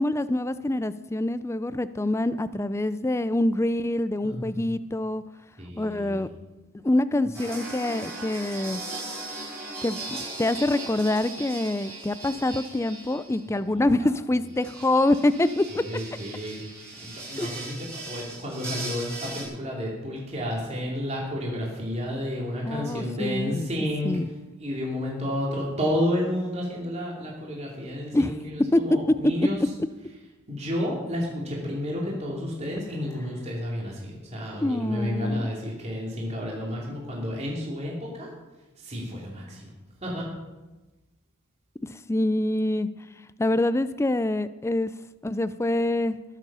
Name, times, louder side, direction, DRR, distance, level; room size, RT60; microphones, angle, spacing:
voice 1, 0.0-5.2 5.8-6.3 6.8-8.8 9.8-15.8 17.4-17.5 22.7-23.7 24.0-24.3 28.1-28.3 28.7-28.8 34.6-35.4 42.1-42.9 43.4-44.9 45.2-46.2, left 1 dB, 15° left, 14 dB, 0.4 m, -25 dB
voice 2, 4.2-4.7 5.6-6.4 13.7-14.1 15.7-24.2 24.6-29.7 30.5-38.3 38.8-39.7 40.0-40.3, equal, 30° right, -3 dB, 2.9 m, -31 dB
sound 1, 7.3-13.4 14.5-19.4, right 2 dB, 15° right, 5.2 m, -38 dB
21.0 x 7.4 x 5.6 m, 1.1 s
head